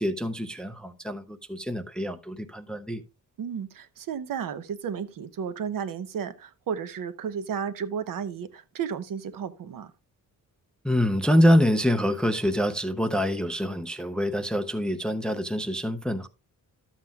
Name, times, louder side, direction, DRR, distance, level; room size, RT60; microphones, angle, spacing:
voice 1, 0.0-3.0 10.8-16.3, equal, 5° left, 0.4 m, -25 dB
voice 2, 3.4-9.9, right 7 dB, 70° right, 0.9 m, -33 dB
12.5 x 7.4 x 2.3 m
wide cardioid pair, 175°, 34 cm